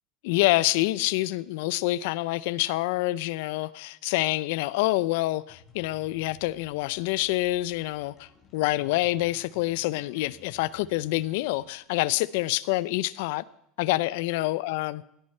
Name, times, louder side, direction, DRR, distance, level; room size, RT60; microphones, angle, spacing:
voice 1, 0.2-13.4 13.8-15.0, left 18 dB, 75° left, 20 dB, 0.5 m, -27 dB
sound 1, 5.5-11.8, left 6 dB, 35° left, 4.3 m, -56 dB
16.5 x 9.8 x 4.4 m, 0.75 s
supercardioid pair, 140°, 0 cm